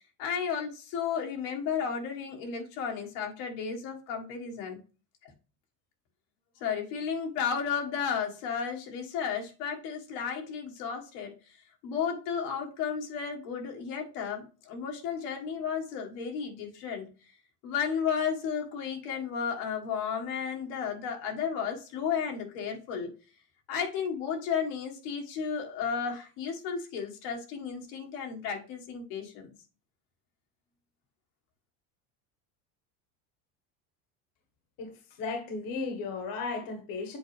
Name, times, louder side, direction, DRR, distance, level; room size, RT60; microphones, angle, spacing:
voice 1, 0.2-4.8 6.6-11.6 11.8-17.1 17.6-23.1 23.7-29.5, left 7 dB, 75° left, 1.7 m, -33 dB
voice 2, 35.2-37.2, left 4 dB, 50° left, 1.5 m, -35 dB
7.9 x 4.0 x 3.3 m
cardioid pair, 130°, 43 cm